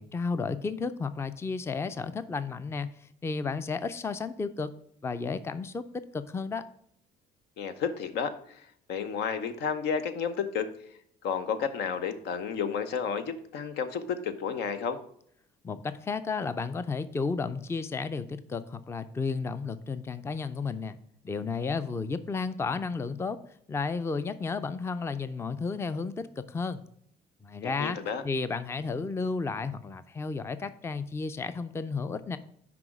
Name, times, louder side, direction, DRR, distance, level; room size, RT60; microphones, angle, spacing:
voice 1, 0.0-4.7 5.0-6.7 15.6-21.0 21.2-23.4 23.7-26.8 27.4-28.0 28.2-32.4, left 4 dB, 15° left, 13 dB, 0.4 m, -33 dB
voice 2, 7.6-8.6 8.9-10.7 11.2-15.0 27.6-28.2, left 6 dB, 80° left, 10 dB, 0.9 m, -31 dB
6.0 x 5.0 x 6.0 m, 0.67 s
cardioid pair, 110°, 17 cm